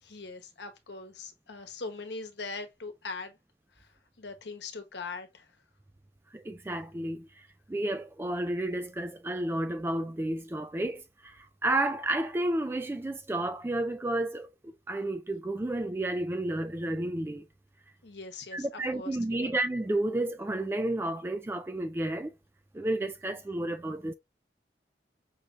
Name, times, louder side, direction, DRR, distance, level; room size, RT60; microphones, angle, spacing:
voice 1, 0.0-3.4 3.8-3.9 4.2-5.5 18.0-18.7 19.0-19.5, left 3 dB, 70° left, 1.1 m, -41 dB
voice 2, 6.3-17.4 18.5-22.3 22.7-24.1, right 1 dB, 15° right, 0.3 m, -31 dB
5.5 x 3.2 x 2.5 m
head